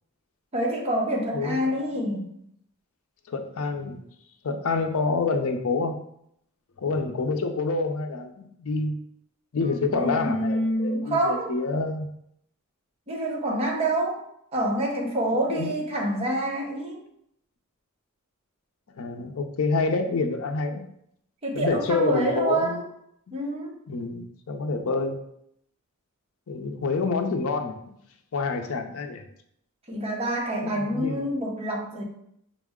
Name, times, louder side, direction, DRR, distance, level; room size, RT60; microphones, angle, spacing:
voice 1, 0.5-2.3 9.6-11.5 13.1-14.3 14.5-17.0 21.4-22.8 23.3-23.8 29.9-32.0, right 1 dB, 30° right, -1 dB, 0.8 m, -27 dB
voice 2, 1.3-1.8 3.3-4.0 4.4-6.0 6.8-9.0 9.5-12.1 15.5-15.7 19.0-20.8 21.5-22.8 23.9-25.2 26.5-27.9 28.3-29.2 30.7-31.3, left 3 dB, 70° left, 5 dB, 0.5 m, -27 dB
5.5 x 2.0 x 3.5 m, 0.73 s
head